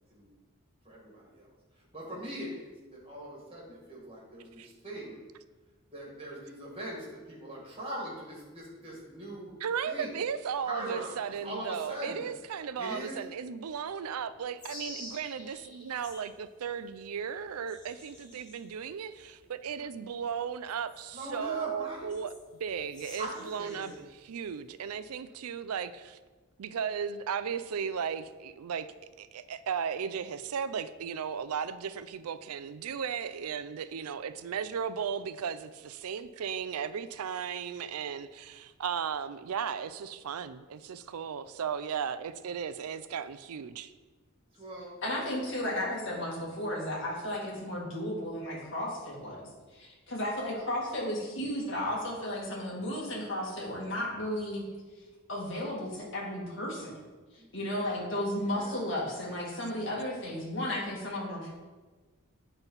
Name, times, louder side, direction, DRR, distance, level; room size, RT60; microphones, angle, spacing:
voice 1, 0.8-1.5 1.9-2.6 2.9-5.2 5.9-9.6 9.8-10.1 10.6-12.3 12.8-13.2 21.1-22.1 23.2-24.0 44.6-44.9 57.4-58.1 58.4-58.9, right 1 dB, 25° right, -4 dB, 2.0 m, -41 dB
voice 2, 9.6-22.3 22.6-26.2 26.6-28.9 29.2-43.9, right 7 dB, 90° right, 13 dB, 0.4 m, -36 dB
sound 1, 14.6-16.4 16.8-24.0 24.4-25.0, left 1 dB, 20° left, 1.5 m, -50 dB
voice 3, 45.0-54.6 55.3-56.9 57.5-61.6, left 1 dB, 55° left, -5 dB, 2.2 m, -34 dB
8.9 x 4.0 x 5.6 m, 1.3 s
head